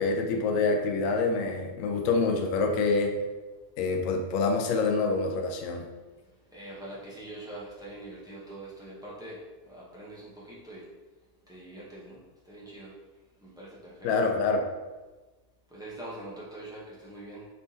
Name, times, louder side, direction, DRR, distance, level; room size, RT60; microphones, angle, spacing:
voice 1, 0.0-3.1 3.8-5.8 14.0-14.6, left 3 dB, 70° left, 3 dB, 0.8 m, -26 dB
voice 2, 6.5-10.9 11.5-12.9 13.4-14.3 15.7-17.5, right 1 dB, 5° right, -7 dB, 0.3 m, -44 dB
4.3 x 3.3 x 2.7 m, 1.2 s
omnidirectional pair, 1.7 m